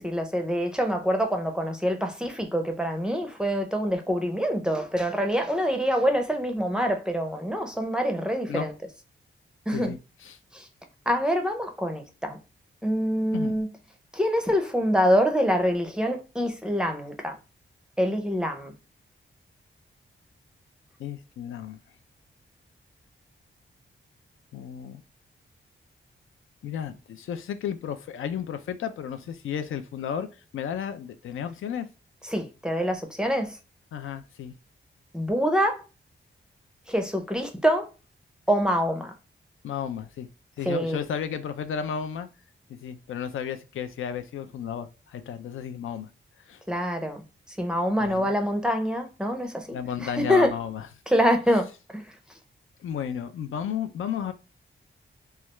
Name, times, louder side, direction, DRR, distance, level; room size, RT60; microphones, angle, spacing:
voice 1, 0.0-8.7 9.7-10.0 10.5-10.6 11.1-12.4 12.8-13.7 14.1-17.4 18.0-18.7 32.3-33.6 35.1-35.8 36.9-37.9 38.5-39.1 40.7-41.0 46.7-47.2 47.6-50.5 51.1-52.1, equal, 5° right, 0.5 m, -25 dB
voice 2, 21.0-21.8 24.5-25.0 26.6-30.3 30.5-31.9 33.9-34.5 39.6-40.3 40.6-42.3 42.7-46.1 46.5-46.6 48.0-48.3 49.7-50.9 52.8-54.3, left 8 dB, 85° left, 0.4 m, -33 dB
3.2 x 2.3 x 2.9 m
wide cardioid pair, 140°, 20 cm